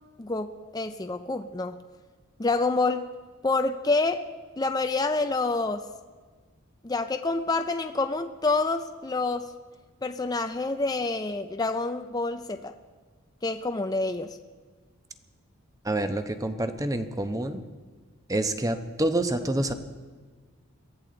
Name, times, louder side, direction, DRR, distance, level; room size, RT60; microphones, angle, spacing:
voice 1, 0.2-1.8 2.4-3.1 3.4-4.2 4.6-5.9 6.8-9.5 10.0-12.7 13.4-14.4, left 3 dB, 20° left, 7 dB, 0.4 m, -27 dB
voice 2, 15.8-17.6 18.3-19.7, right 1 dB, 15° right, 8 dB, 0.8 m, -27 dB
22.5 x 15.0 x 3.9 m, 1.4 s
head